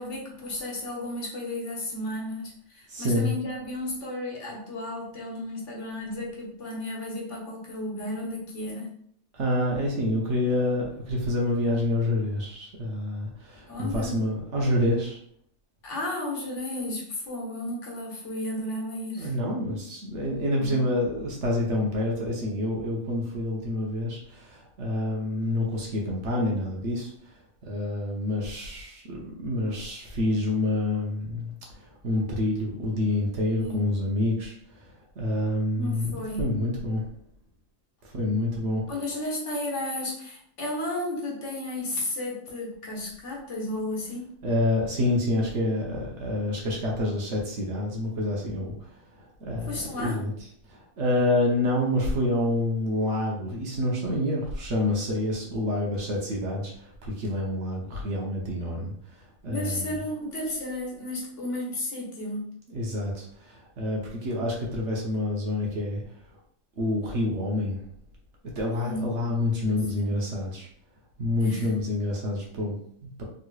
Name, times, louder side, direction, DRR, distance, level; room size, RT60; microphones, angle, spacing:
voice 1, 0.0-8.9 13.7-14.2 15.8-19.3 20.6-20.8 33.6-33.8 35.8-36.6 38.9-44.3 49.7-50.2 59.4-62.4 68.7-69.4 69.6-70.1 71.4-71.7, left 1 dB, 65° left, -3 dB, 1.3 m, -33 dB
voice 2, 2.9-3.3 9.3-15.2 19.2-27.3 27.6-37.1 38.0-38.8 44.4-50.3 50.7-59.9 62.7-66.0 66.8-67.8 68.6-70.7 71.2-73.2, left 1 dB, 60° right, -2 dB, 1.1 m, -28 dB
3.9 x 2.9 x 2.3 m, 0.65 s
omnidirectional pair, 1.4 m